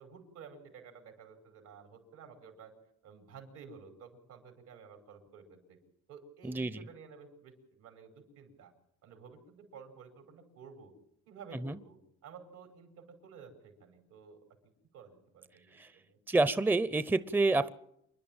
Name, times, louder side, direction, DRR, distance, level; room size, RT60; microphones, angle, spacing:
voice 1, 0.0-2.7 3.0-5.8 6.1-8.7 9.0-10.9 11.3-14.4 14.6-16.2, right 6 dB, 80° right, 4 dB, 5.3 m, -53 dB
voice 2, 6.4-6.8 11.6-11.8 15.7-15.9 16.3-17.7, right 2 dB, 5° right, 14 dB, 0.7 m, -28 dB
27.0 x 11.0 x 8.9 m, 0.78 s
cardioid pair, 90°, 30 cm